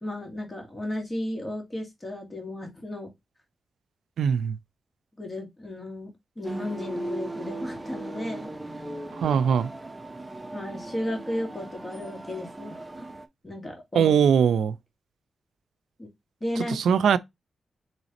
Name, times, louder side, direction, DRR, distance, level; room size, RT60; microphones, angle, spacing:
voice 1, 0.0-3.1 5.2-8.5 10.5-13.1 13.4-14.2 16.0-16.1 16.4-16.8, left 1 dB, 20° left, 2.0 m, -34 dB
voice 2, 4.2-4.6 9.1-9.7 13.9-14.8 16.6-17.2, right 7 dB, 90° right, 0.3 m, -21 dB
sound 1, 6.4-13.3, right 2 dB, 15° right, 0.7 m, -37 dB
4.0 x 3.2 x 4.1 m
cardioid pair, 60°, 0 cm